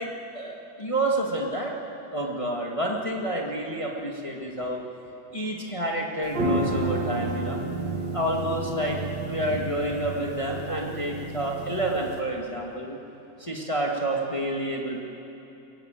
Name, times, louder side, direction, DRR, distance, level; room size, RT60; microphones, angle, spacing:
voice 1, 0.0-1.7 2.1-4.8 5.3-7.6 8.1-13.0 13.4-15.0, right 1 dB, 20° left, -1 dB, 0.8 m, -29 dB
sound 1, 6.3-12.2, right 2 dB, 35° right, 2.5 m, -31 dB
23.0 x 17.5 x 9.0 m, 2.9 s
omnidirectional pair, 3.9 m